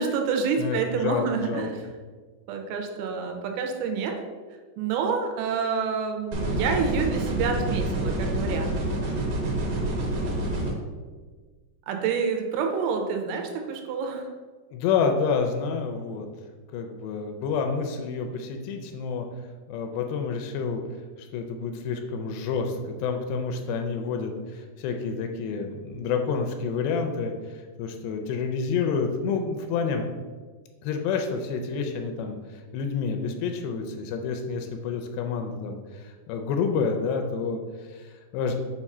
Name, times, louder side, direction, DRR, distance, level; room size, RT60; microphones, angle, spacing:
voice 1, 0.0-1.7 2.5-4.2 4.8-8.7 11.9-14.3, right 5 dB, 90° right, 3 dB, 3.1 m, -28 dB
voice 2, 0.6-1.9 14.7-16.3 16.7-19.3 19.7-20.8 21.2-30.0 30.8-38.5, left 5 dB, 80° left, 5 dB, 2.6 m, -29 dB
sound 1, 6.3-10.7, right 1 dB, 70° right, 2.6 m, -27 dB
7.0 x 2.5 x 5.3 m, 1.4 s
omnidirectional pair, 5.1 m